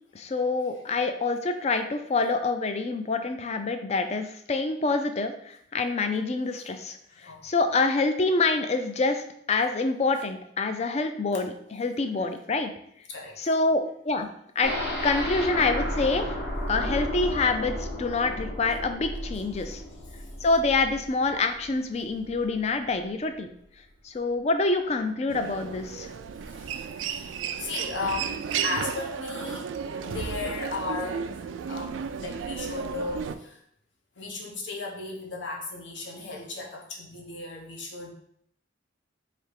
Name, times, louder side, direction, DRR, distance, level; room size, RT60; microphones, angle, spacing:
voice 1, 0.1-7.0 7.2-12.7 13.4-14.3 14.6-14.7 15.0-16.4 16.7-19.8 20.4-23.5 24.0-26.1, left 3 dB, 35° left, 7 dB, 0.4 m, -26 dB
voice 2, 7.1-7.5 12.2-12.3 13.1-13.4 20.2-20.3 26.5-29.7 30.0-31.4 31.7-33.6 34.2-38.1, left 3 dB, 85° left, -1 dB, 1.0 m, -36 dB
sound 1, 14.6-22.5 22.8-22.9 23.3-23.4, left 1 dB, 65° left, 1.5 m, -33 dB
Human voice, 25.3-33.3, right 7 dB, 90° right, 0.3 m, -33 dB
3.4 x 2.8 x 4.6 m, 0.69 s
head